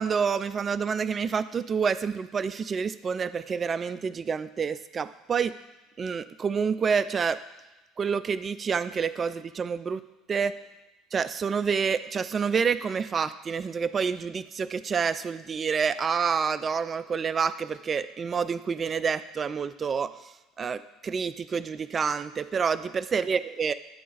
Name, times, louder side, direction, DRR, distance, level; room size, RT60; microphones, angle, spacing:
voice 1, 0.0-5.5 6.0-7.4 8.0-10.0 10.3-10.5 11.1-20.2 20.6-23.7, right 6 dB, 35° right, 13 dB, 0.3 m, -28 dB
8.4 x 3.7 x 4.2 m, 1.0 s
hypercardioid pair, 65°, 0 cm